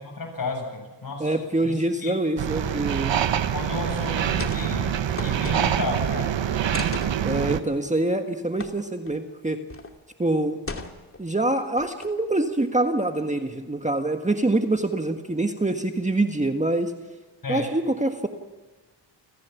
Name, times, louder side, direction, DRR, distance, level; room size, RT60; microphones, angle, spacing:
voice 1, 0.0-1.3 1.6-2.2 3.5-6.4 17.4-17.7, left 3 dB, 50° left, 2 dB, 7.9 m, -33 dB
voice 2, 1.2-3.1 7.2-9.6 10.2-10.6 11.2-16.9 17.5-18.3, right 2 dB, 15° right, 5 dB, 1.6 m, -25 dB
sound 1, 2.4-7.6, right 9 dB, 80° right, 1.3 m, -25 dB
sound 2, 4.3-4.7 4.9-6.0 6.7-7.2 8.6-8.7 9.1-9.2 9.7-9.9 10.7-11.2 11.8-12.3, left 3 dB, 30° left, 2.5 m, -36 dB
29.5 x 15.0 x 7.3 m, 1.3 s
cardioid pair, 75°, 44 cm